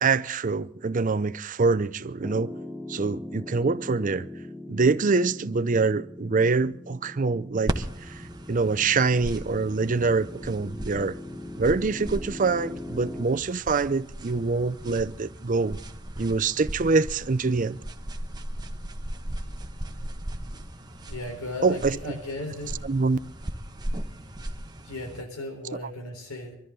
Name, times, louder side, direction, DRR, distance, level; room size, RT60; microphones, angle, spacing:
voice 1, 0.0-2.5 2.9-4.3 4.7-11.2 11.6-15.8 16.2-17.8 21.6-21.9 22.8-23.2, right 4 dB, 35° right, 0.5 m, -25 dB
Piano, 2.2-13.2, left 1 dB, 5° left, 0.6 m, -41 dB
sound 1, 7.7-25.2, right 1 dB, 20° right, 1.2 m, -37 dB
voice 2, 21.1-22.7 24.8-26.5, left 2 dB, 85° left, 4.1 m, -36 dB
24.0 x 13.5 x 3.8 m
head